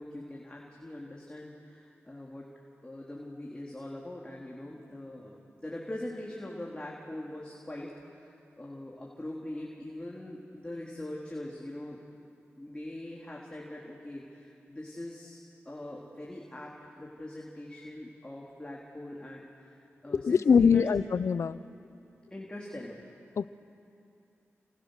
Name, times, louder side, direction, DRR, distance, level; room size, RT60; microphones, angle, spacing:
voice 1, 0.0-2.5 2.8-12.0 12.6-15.4 15.7-20.9 22.3-23.0, left 1 dB, 20° left, -3 dB, 3.7 m, -42 dB
voice 2, 20.1-21.6 23.4-23.5, left 6 dB, 75° left, 16 dB, 0.6 m, -23 dB
30.0 x 28.0 x 6.7 m, 2.7 s
cardioid pair, 60°, 5 cm